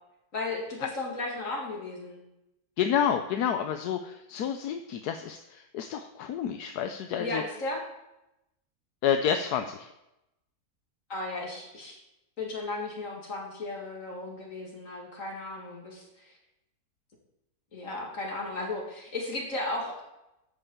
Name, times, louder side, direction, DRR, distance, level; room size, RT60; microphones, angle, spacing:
voice 1, 0.3-2.2 7.2-7.8 11.1-12.0 12.4-16.3 17.7-20.1, left 2 dB, 55° left, -1 dB, 3.0 m, -35 dB
voice 2, 2.8-7.4 9.0-9.9, left 8 dB, 80° left, 7 dB, 1.2 m, -29 dB
12.0 x 5.5 x 7.3 m, 0.89 s
omnidirectional pair, 1.7 m